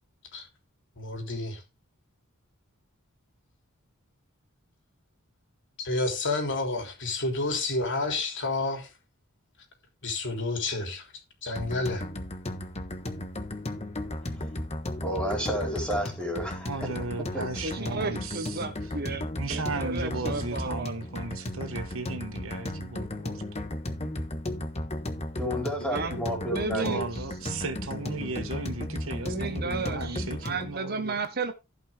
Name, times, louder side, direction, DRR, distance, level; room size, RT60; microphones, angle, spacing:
voice 1, 1.0-1.6 5.8-8.9 10.0-11.1 11.4-12.0, left 2 dB, 55° left, 3.3 m, -30 dB
sound 1, 11.6-30.8, left 1 dB, 30° left, 1.3 m, -35 dB
voice 2, 15.0-16.8 17.3-17.4 25.4-27.0, equal, 5° left, 4.3 m, -31 dB
voice 3, 16.6-18.6 19.4-23.4 24.0-24.2 26.2-26.3 26.7-31.2, right 3 dB, 65° right, 1.5 m, -36 dB
voice 4, 17.6-21.0 25.8-27.2 29.2-31.5, right 3 dB, 45° right, 1.3 m, -34 dB
15.0 x 5.8 x 3.5 m
head